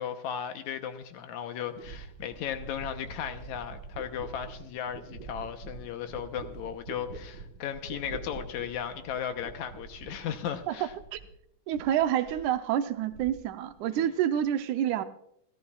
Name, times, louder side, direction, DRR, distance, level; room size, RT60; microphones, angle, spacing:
voice 1, 0.0-10.9, left 9 dB, 75° left, 2.2 m, -36 dB
sound 1, 1.8-11.4 11.7-12.6 12.9-13.7 14.0-14.5, right 4 dB, 40° right, 1.6 m, -45 dB
voice 2, 10.7-11.2 11.7-15.0, right 10 dB, 85° right, 2.1 m, -28 dB
29.0 x 13.0 x 2.3 m
omnidirectional pair, 3.5 m